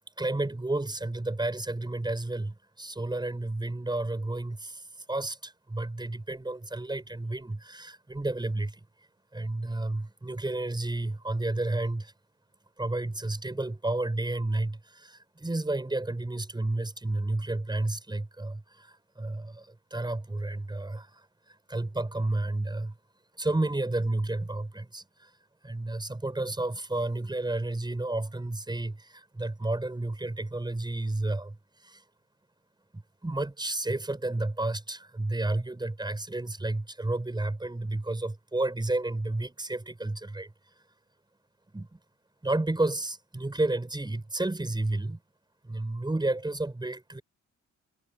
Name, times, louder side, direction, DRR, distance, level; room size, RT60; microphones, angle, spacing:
voice 1, 0.2-8.8 9.3-12.1 12.8-22.9 23.4-25.3 25.6-32.0 32.9-40.8 41.7-42.0 42.4-45.2 45.6-47.2, right 2 dB, 15° right, 7.8 m, -31 dB
cardioid pair, 90°, 30 cm